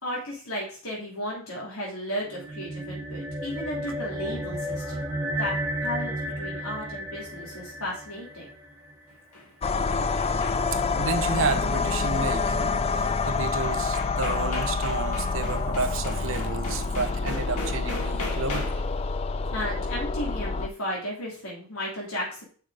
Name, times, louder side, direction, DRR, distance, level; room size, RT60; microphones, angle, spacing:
voice 1, 0.0-5.6 5.8-8.5 19.5-22.4, equal, 75° left, -4 dB, 3.0 m, -34 dB
sound 1, 2.2-8.9, equal, 10° right, 1.7 m, -33 dB
sound 2, 9.1-10.9 13.2-13.3 13.6-19.0, left 2 dB, 90° left, 2.1 m, -38 dB
sound 3, 9.6-20.7, left 4 dB, 25° left, 0.3 m, -27 dB
voice 2, 11.0-19.0, right 4 dB, 60° right, 8 dB, 0.9 m, -31 dB
6.4 x 5.1 x 4.8 m, 0.42 s
head